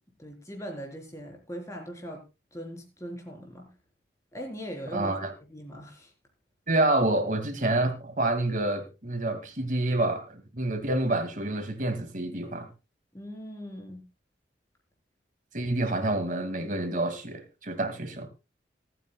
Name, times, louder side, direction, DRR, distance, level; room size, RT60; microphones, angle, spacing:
voice 1, 0.2-2.2 2.5-3.7 4.3-5.1 5.5-6.1 13.1-14.0, equal, 20° left, 2 dB, 3.9 m, -40 dB
voice 2, 4.9-5.3 6.7-12.7 15.5-18.3, right 2 dB, 45° right, 7 dB, 2.2 m, -28 dB
26.0 x 9.2 x 2.3 m, 0.28 s
head